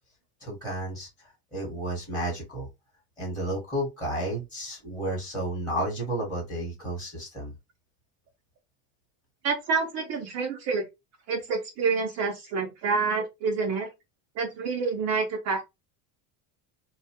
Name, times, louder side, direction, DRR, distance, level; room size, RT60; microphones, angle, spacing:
voice 1, 0.4-2.7 3.2-7.5, right 1 dB, 10° left, -6 dB, 1.1 m, -32 dB
voice 2, 9.4-10.8 11.3-13.9 14.4-15.6, right 4 dB, 35° right, 2 dB, 0.5 m, -28 dB
2.7 x 2.2 x 2.8 m, 0.22 s
cardioid pair, 165°, 44 cm